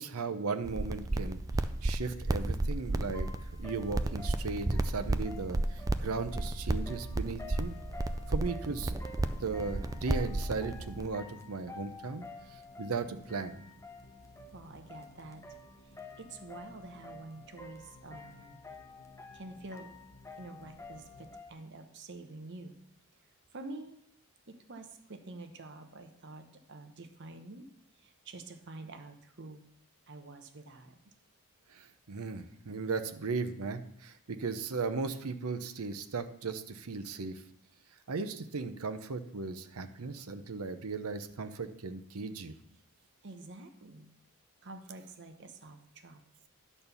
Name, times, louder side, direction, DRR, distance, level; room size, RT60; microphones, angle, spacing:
voice 1, 0.0-1.4 1.8-3.3 3.6-7.8 8.3-9.0 9.4-12.2 12.8-13.6 31.7-37.4 38.1-42.5, right 4 dB, 75° right, 9 dB, 0.7 m, -36 dB
sound 1, 0.6-11.1, right 2 dB, 15° right, 0.3 m, -33 dB
sound 2, 3.1-21.5, left 3 dB, 15° left, 0.7 m, -51 dB
sound 3, 3.7-21.3, left 1 dB, 40° left, 1.3 m, -57 dB
voice 2, 14.5-15.5 15.8-18.6 19.3-19.9 20.4-22.8 23.5-24.0 24.5-27.7 27.9-29.6 30.1-31.0 43.2-44.1 44.6-46.2, right 2 dB, 55° right, 6 dB, 0.9 m, -48 dB
10.5 x 4.2 x 6.9 m, 0.72 s
head